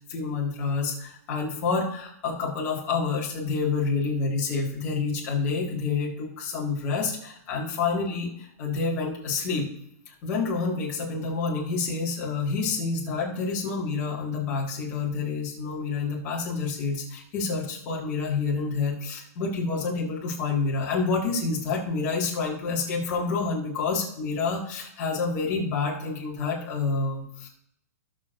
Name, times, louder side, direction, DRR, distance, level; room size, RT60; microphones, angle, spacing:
voice 1, 0.1-8.3 8.6-9.7 10.1-27.5, left 4 dB, 20° left, -4 dB, 2.0 m, -28 dB
18.5 x 6.5 x 2.6 m, 0.74 s
hypercardioid pair, 175°, 9 cm